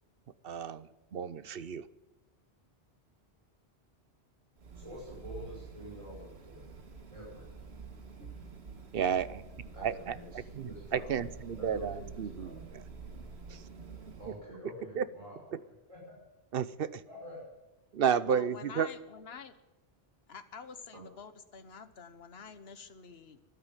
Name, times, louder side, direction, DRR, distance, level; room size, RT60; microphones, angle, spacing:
voice 1, 0.4-1.8 8.9-9.4 9.8-12.8 13.5-13.6 14.3-14.4 15.0-15.1 15.5-15.6 16.5-17.0 17.9-18.9, right 8 dB, 65° right, 16 dB, 0.9 m, -32 dB
sound 1, 4.6-14.4, right 5 dB, 80° right, 1.9 m, -48 dB
voice 2, 4.8-6.7 7.1-7.4 9.7-11.2 11.6-12.7 14.2-15.4 15.9-16.1 17.1-17.4 20.9-21.0, left 1 dB, 30° right, -3 dB, 6.0 m, -47 dB
voice 3, 18.2-19.6 20.3-23.4, left 6 dB, 70° left, 11 dB, 1.4 m, -47 dB
13.0 x 12.0 x 9.1 m, 1.0 s
omnidirectional pair, 1.1 m